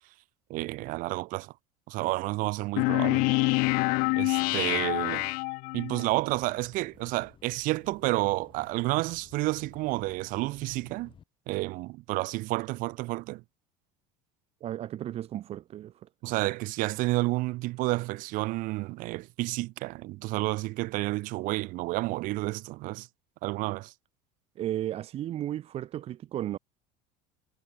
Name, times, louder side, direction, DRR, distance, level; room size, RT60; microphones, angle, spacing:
voice 1, 0.5-1.5 1.9-3.3 4.2-5.3 5.7-11.1 11.5-13.4 16.2-23.1 23.4-23.9, right 21 dB, 60° right, 2.2 m, -30 dB
sound 1, 2.8-6.1, left 28 dB, 65° left, 0.7 m, -26 dB
sound 2, 6.1-11.2, left 8 dB, 35° left, 7.6 m, -57 dB
voice 2, 14.6-16.1 24.6-26.6, right 12 dB, 40° right, 0.7 m, -34 dB
supercardioid pair, 115°, 16 cm